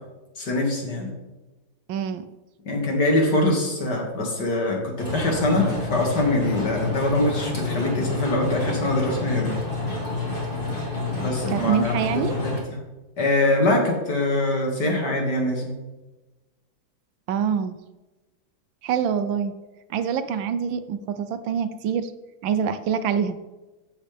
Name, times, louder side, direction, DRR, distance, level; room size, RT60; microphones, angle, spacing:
voice 1, 0.4-1.1 2.7-9.6 11.2-11.9 12.4-12.8 13.2-15.7, left 1 dB, 55° left, 0 dB, 2.6 m, -23 dB
voice 2, 1.9-2.3 11.5-12.3 17.3-17.8 18.8-19.5 19.9-22.1 22.4-23.4, right 7 dB, 75° right, 11 dB, 1.4 m, -25 dB
sound 1, 5.0-12.6, left 3 dB, 25° left, 2.4 m, -29 dB
14.0 x 7.5 x 3.4 m, 1.1 s
omnidirectional pair, 2.2 m